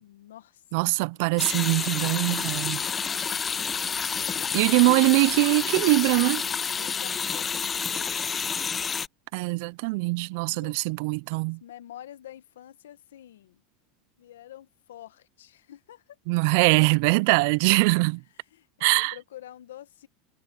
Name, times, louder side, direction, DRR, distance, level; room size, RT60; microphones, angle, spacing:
voice 1, 0.0-0.6 3.1-3.3 4.1-5.6 6.8-8.7 10.5-10.8 11.6-13.6 14.2-16.2 16.8-17.1 18.5-20.1, left 12 dB, 90° left, 1.2 m, -48 dB
voice 2, 0.7-2.8 4.5-6.4 9.3-11.6 16.3-18.2 18.8-19.2, right 28 dB, 65° right, 0.4 m, -22 dB
sound 1, 1.4-9.1, left 6 dB, 25° left, 0.5 m, -29 dB
supercardioid pair, 110°, 0 cm